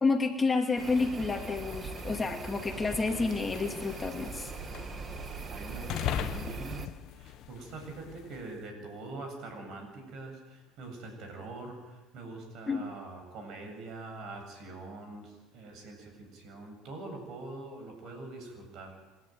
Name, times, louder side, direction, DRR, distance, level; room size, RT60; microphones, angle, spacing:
voice 1, 0.0-4.5 12.7-12.8, left 4 dB, 20° left, 3 dB, 2.6 m, -29 dB
sound 1, 0.7-8.6, left 11 dB, 55° left, 1.1 m, -41 dB
sound 2, 0.8-6.9, right 5 dB, 30° right, 2.0 m, -41 dB
voice 2, 5.5-6.9 7.1-19.0, right 2 dB, 55° right, 4 dB, 7.6 m, -44 dB
27.0 x 11.0 x 9.3 m, 1.2 s
hypercardioid pair, 85°, 0 cm